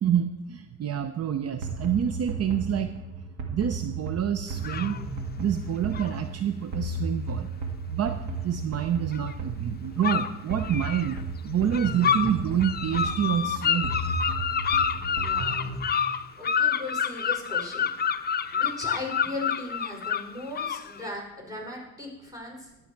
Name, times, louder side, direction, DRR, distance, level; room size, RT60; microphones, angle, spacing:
voice 1, 0.0-2.9 3.5-5.0 5.4-7.5 7.9-8.2 8.4-11.2 11.4-13.9, right 9 dB, 55° right, 9 dB, 0.7 m, -27 dB
sound 1, 1.6-15.8, right 3 dB, 90° right, 1.8 m, -34 dB
sound 2, 4.6-5.0 5.9-6.2 9.1-9.3 10.0-11.1 11.7-12.3 12.6-21.1, left 7 dB, 35° left, 0.6 m, -28 dB
voice 2, 14.9-15.8 16.4-17.9 18.5-22.7, left 2 dB, 10° right, -1 dB, 4.4 m, -38 dB
12.0 x 8.7 x 4.6 m, 1.0 s
cardioid pair, 90°, 30 cm